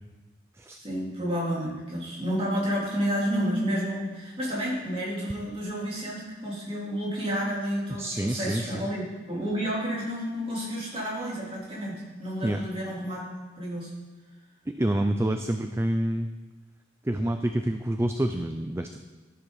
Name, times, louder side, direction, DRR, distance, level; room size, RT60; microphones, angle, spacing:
voice 1, 0.8-13.3 13.6-14.0, equal, 30° right, -5 dB, 3.4 m, -30 dB
voice 2, 8.0-8.9 12.4-12.6 14.7-16.3 17.0-19.0, right 1 dB, 15° right, 6 dB, 0.4 m, -27 dB
12.0 x 11.5 x 4.0 m, 1.3 s
head